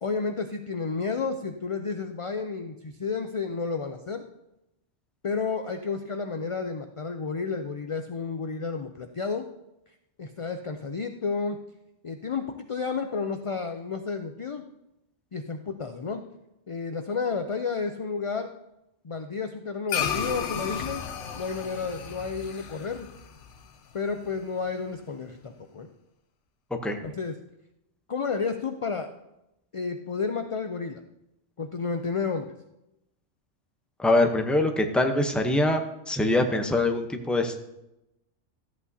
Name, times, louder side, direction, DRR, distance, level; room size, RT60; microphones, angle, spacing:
voice 1, 0.0-4.2 5.2-9.5 10.2-11.6 12.0-14.6 15.3-16.2 16.7-18.5 19.0-21.0 21.3-23.1 23.9-25.9 27.0-27.3 28.1-29.1 29.7-31.0 31.6-32.5, left 4 dB, 45° left, 6 dB, 0.4 m, -31 dB
sound 1, 19.9-24.5, left 7 dB, 85° left, 1.1 m, -34 dB
voice 2, 34.0-35.8 36.1-37.6, left 2 dB, ahead, 4 dB, 0.6 m, -23 dB
14.0 x 8.3 x 2.7 m, 0.88 s
omnidirectional pair, 1.2 m